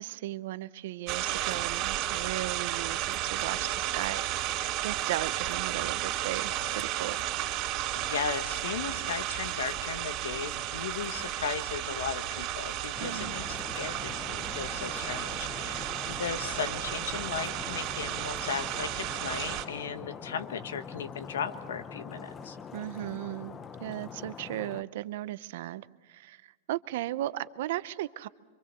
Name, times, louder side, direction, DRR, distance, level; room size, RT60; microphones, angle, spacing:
voice 1, 0.0-7.2 13.0-13.4 22.7-28.3, right 15 dB, 70° right, 15 dB, 0.7 m, -36 dB
sound 1, 1.1-19.7, right 13 dB, 45° right, 3.1 m, -33 dB
voice 2, 7.9-22.6, left 6 dB, 90° left, 10 dB, 1.3 m, -36 dB
Stream, 12.9-24.8, left 6 dB, 25° left, 0.8 m, -43 dB
25.0 x 24.5 x 6.9 m, 1.4 s
hypercardioid pair, 125°, 0 cm